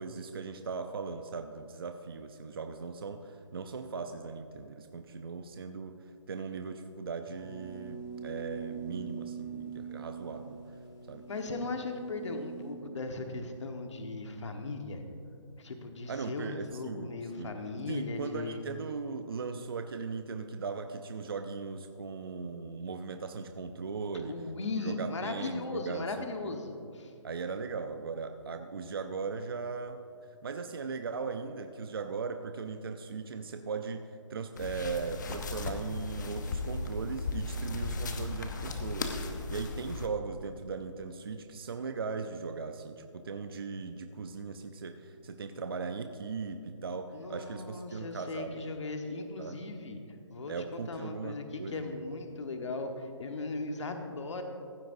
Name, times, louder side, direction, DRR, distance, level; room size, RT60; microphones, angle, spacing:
voice 1, 0.0-6.0 6.3-10.6 11.1-11.2 16.1-17.5 17.9-24.4 24.7-26.6 27.2-30.0 30.4-34.0 34.3-48.8 49.4-49.6 50.5-52.1, right 5 dB, 50° right, 7 dB, 0.6 m, -38 dB
sound 1, 7.2-12.7, right 7 dB, 5° left, 0.4 m, -43 dB
voice 2, 11.3-15.0 15.6-18.7 24.3-27.1 47.1-50.0 50.3-54.4, left 3 dB, 65° left, 4 dB, 1.3 m, -38 dB
sound 2, 34.5-40.1, left 3 dB, 35° left, 0.8 m, -36 dB
15.5 x 12.0 x 2.6 m, 2.6 s
hypercardioid pair, 175°, 16 cm